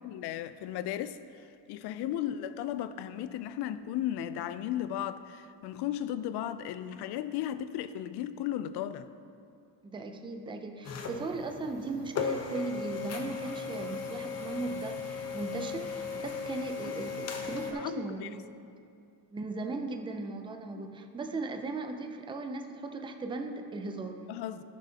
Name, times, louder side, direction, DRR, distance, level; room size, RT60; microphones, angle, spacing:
voice 1, 0.0-9.1 17.7-18.3 20.7-20.9 24.3-24.6, left 11 dB, 60° left, 0.5 m, -35 dB
voice 2, 9.8-18.4 19.3-24.2, right 3 dB, 10° right, 0.4 m, -38 dB
sound 1, 10.8-17.7, left 5 dB, 35° left, 0.8 m, -37 dB
14.0 x 6.4 x 2.8 m
cardioid pair, 135°, 45 cm